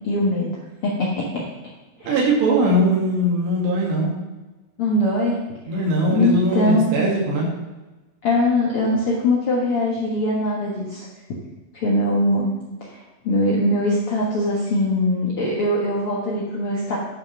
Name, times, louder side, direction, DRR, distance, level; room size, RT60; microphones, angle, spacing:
voice 1, 0.0-1.4 2.0-2.1 4.8-5.4 5.6-5.8 6.1-6.9 8.2-11.1 11.7-12.5 12.8-17.0, left 1 dB, 70° left, -4 dB, 1.3 m, -22 dB
voice 2, 2.0-4.1 5.7-7.5, right 1 dB, 85° right, -2 dB, 4.6 m, -20 dB
11.5 x 6.0 x 6.0 m, 1.1 s
omnidirectional pair, 4.8 m